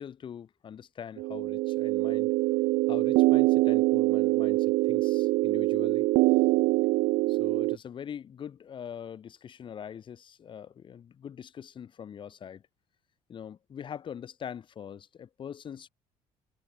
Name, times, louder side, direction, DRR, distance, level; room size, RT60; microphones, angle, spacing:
voice 1, 0.0-2.3 2.9-6.1 7.3-12.6 13.3-15.9, left 8 dB, 40° left, 3.6 m, -43 dB
sound 1, 1.2-7.8, right 22 dB, 90° right, 0.6 m, -24 dB
cardioid pair, 135°, 13 cm